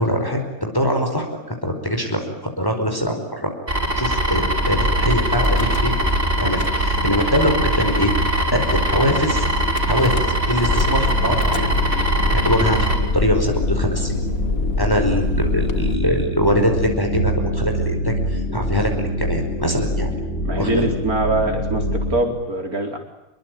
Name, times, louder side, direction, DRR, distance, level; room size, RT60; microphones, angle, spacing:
voice 1, 0.0-3.5 4.0-6.0 6.4-8.2 8.5-9.4 9.9-11.7 12.3-14.2 14.8-20.1 20.6-20.9, equal, 15° left, 3 dB, 5.2 m, -23 dB
sound 1, 3.7-12.9, right 1 dB, 40° right, 6.0 m, -22 dB
sound 2, 4.6-22.2, equal, 50° left, 5.1 m, -26 dB
Car / Engine starting / Idling, 5.3-6.1 6.4-7.2 7.8-7.9 8.1-8.2 8.5-8.8 9.8-15.9, left 4 dB, 70° left, 1.9 m, -27 dB
voice 2, 20.4-23.0, right 2 dB, 75° right, 4 dB, 4.8 m, -23 dB
27.5 x 22.5 x 9.4 m, 0.93 s
omnidirectional pair, 1.5 m